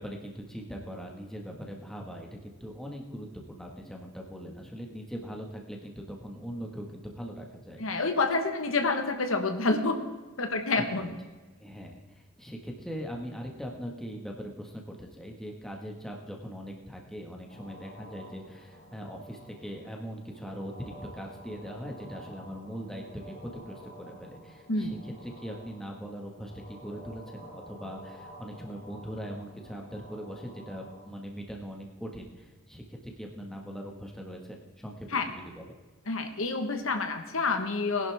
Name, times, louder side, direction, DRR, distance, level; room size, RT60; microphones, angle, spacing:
voice 1, 0.0-8.0 10.7-11.1 11.6-35.7, equal, ahead, 0 dB, 1.6 m, -41 dB
voice 2, 7.8-9.9 10.4-11.1 24.7-25.0 35.1-35.3 36.1-38.1, left 3 dB, 75° left, 6 dB, 1.4 m, -28 dB
sound 1, 17.5-31.0, equal, 40° left, 3.7 m, -50 dB
19.5 x 11.0 x 3.6 m, 1.2 s
head